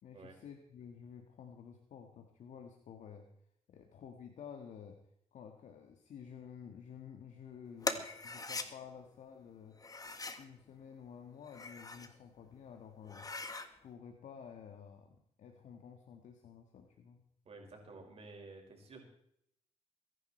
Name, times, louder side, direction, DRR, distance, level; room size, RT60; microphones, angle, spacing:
voice 1, 0.0-3.3 3.7-5.0 5.3-9.8 10.4-13.3 13.8-17.2, left 7 dB, 70° left, 4 dB, 1.7 m, -52 dB
sound 1, 7.8-8.7 9.8-10.4 11.4-12.1 12.6-12.7 13.0-13.7, left 3 dB, 30° left, 1.7 m, -40 dB
voice 2, 17.5-19.1, right 3 dB, 50° right, 1 dB, 5.5 m, -52 dB
22.0 x 11.0 x 4.5 m, 0.73 s
cardioid pair, 70°, 13 cm